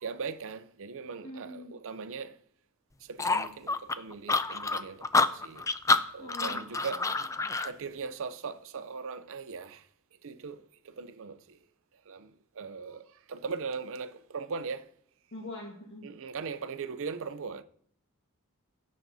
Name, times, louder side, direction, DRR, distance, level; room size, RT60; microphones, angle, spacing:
voice 1, 0.0-2.3 3.1-5.6 6.1-7.0 7.6-9.8 10.2-10.6 11.0-11.4 12.1-12.3 12.6-13.0 13.3-14.8 16.0-17.6, right 5 dB, 60° right, 0.6 m, -39 dB
voice 2, 1.2-1.7 6.2-6.6 15.3-16.1, left 1 dB, 60° left, 1.5 m, -43 dB
sound 1, 3.2-7.7, left 3 dB, 15° left, 0.4 m, -27 dB
17.0 x 7.3 x 2.7 m
head